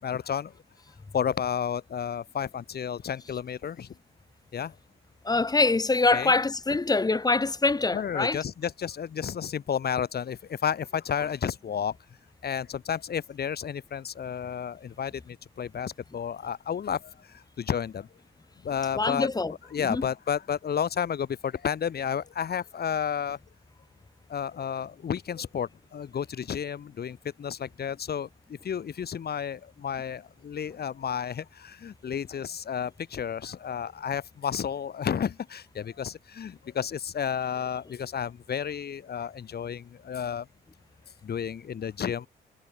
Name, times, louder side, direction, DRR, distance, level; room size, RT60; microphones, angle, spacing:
voice 1, 0.0-0.5 1.1-3.9 4.5-4.7 6.1-6.3 7.9-12.0 12.4-18.1 18.6-19.3 19.7-23.4 24.3-28.3 28.6-40.5 41.2-42.3, left 8 dB, 55° left, 4.0 m, -31 dB
voice 2, 5.2-8.4 18.9-19.5 19.9-20.0, left 3 dB, 20° left, 1.7 m, -24 dB
cardioid pair, 90°, 20 cm